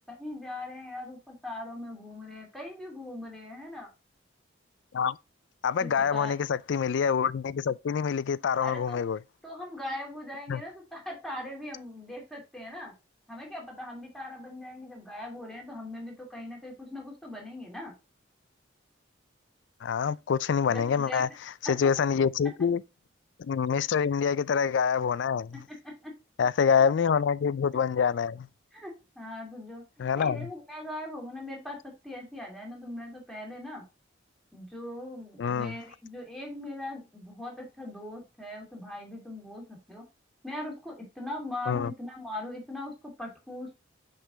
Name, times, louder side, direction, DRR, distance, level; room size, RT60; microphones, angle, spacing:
voice 1, 0.2-3.9 5.8-6.4 8.6-9.0 9.4-12.9 13.3-17.9 20.7-21.2 21.6-21.8 25.7-26.1 28.7-31.8 32.0-33.8 34.5-40.0 40.4-43.8, left 1 dB, ahead, 2.4 m, -40 dB
voice 2, 5.6-9.2 10.5-10.6 19.8-21.3 21.6-22.8 23.4-25.6 26.4-28.5 30.0-30.5 35.4-35.8 41.7-41.9, left 6 dB, 70° left, 0.3 m, -26 dB
5.8 x 5.5 x 3.8 m
head